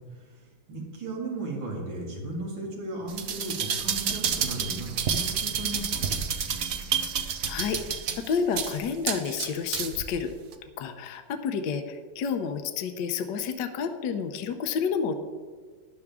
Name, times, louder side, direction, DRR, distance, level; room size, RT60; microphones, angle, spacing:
voice 1, 0.7-6.2, right 2 dB, 80° right, -2 dB, 3.2 m, -36 dB
sound 1, 3.1-10.1 10.5-10.6, right 7 dB, 55° right, 1.0 m, -29 dB
voice 2, 7.5-7.8 8.1-10.3 10.8-15.1, left 6 dB, 70° left, 7 dB, 1.3 m, -30 dB
13.0 x 11.0 x 3.6 m, 1.5 s
omnidirectional pair, 2.1 m